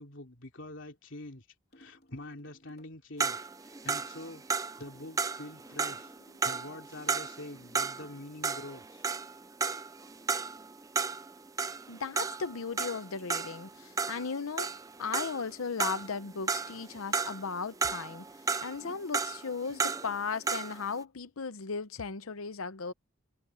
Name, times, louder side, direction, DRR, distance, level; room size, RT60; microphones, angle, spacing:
voice 1, 0.0-1.5 1.7-4.4 4.8-6.1 6.4-9.0, left 1 dB, 65° left, 3.1 m, -45 dB
sound 1, 1.7-3.1 4.9-7.3, left 1 dB, 50° left, 3.4 m, -62 dB
sound 2, 3.2-8.2 8.4-15.5 15.8-17.5 17.8-20.8, right 5 dB, 15° right, 0.5 m, -33 dB
voice 2, 11.9-14.7 15.0-18.3 18.6-22.9, left 5 dB, 85° left, 0.8 m, -36 dB
head